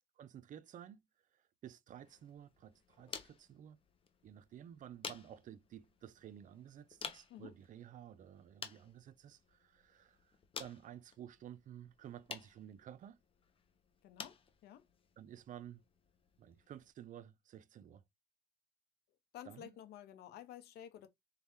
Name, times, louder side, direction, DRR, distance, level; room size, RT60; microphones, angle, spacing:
voice 1, 0.2-1.0 1.3-3.8 4.2-10.3 10.6-13.2 15.2-15.8 16.4-18.0 19.4-19.7, right 10 dB, 50° right, 0.5 m, -53 dB
sound 1, 1.9-16.9, left 5 dB, 30° left, 0.7 m, -53 dB
voice 2, 14.0-14.8 19.3-21.1, left 11 dB, 75° left, 0.9 m, -52 dB
4.0 x 2.9 x 3.6 m
cardioid pair, 110°, 17 cm